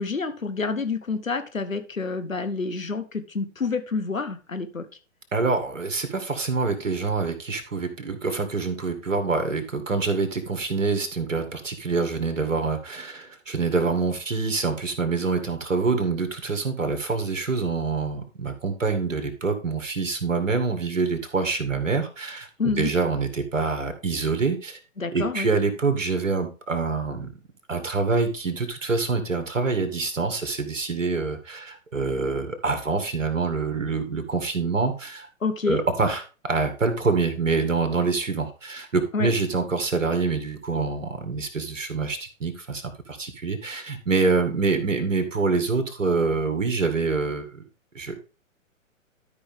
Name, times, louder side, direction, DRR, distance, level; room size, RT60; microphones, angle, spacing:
voice 1, 0.0-4.8 22.6-22.9 25.0-25.5 35.4-35.8 39.1-39.3, left 4 dB, 85° left, 8 dB, 1.3 m, -28 dB
voice 2, 5.3-24.8 25.1-27.3 27.7-35.3 35.7-47.6 47.9-48.2, right 4 dB, 70° right, 7 dB, 2.0 m, -26 dB
12.0 x 5.2 x 3.6 m, 0.33 s
figure-of-eight pair, 120°, 39 cm